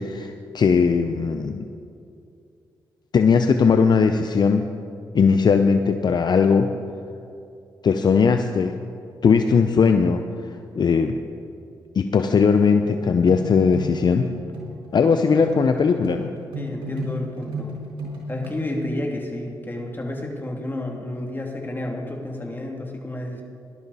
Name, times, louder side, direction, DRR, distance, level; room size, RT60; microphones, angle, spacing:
voice 1, 0.0-1.6 3.1-4.7 5.1-6.7 7.8-8.8 9.2-10.2 10.8-11.2 12.0-14.3 14.9-16.3, left 5 dB, 55° left, 7 dB, 0.6 m, -19 dB
sound 1, 12.8-18.5, equal, 85° right, 3.8 m, -34 dB
voice 2, 16.5-17.8 18.3-23.4, left 1 dB, 25° left, 0 dB, 2.6 m, -30 dB
18.0 x 11.5 x 4.1 m, 2.6 s
cardioid pair, 60°, 9 cm